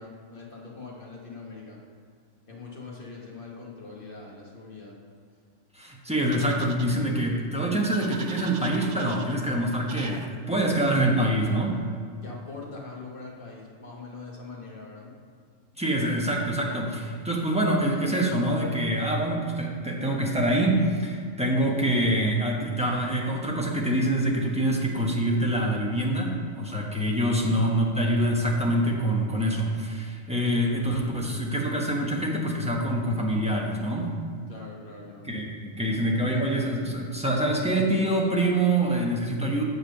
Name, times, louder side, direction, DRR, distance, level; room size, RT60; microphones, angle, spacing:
voice 1, 0.0-1.8 2.5-5.0 11.4-11.8 12.2-15.1 27.3-27.6 34.5-35.3, left 3 dB, 45° left, -3 dB, 1.6 m, -42 dB
voice 2, 5.7-11.7 15.8-34.1 35.3-39.6, right 1 dB, 5° right, -2 dB, 1.0 m, -25 dB
sound 1, 6.3-6.9 7.8-9.4 9.9-10.3, right 7 dB, 70° right, 0.9 m, -43 dB
7.3 x 5.4 x 6.6 m, 2.1 s
omnidirectional pair, 1.3 m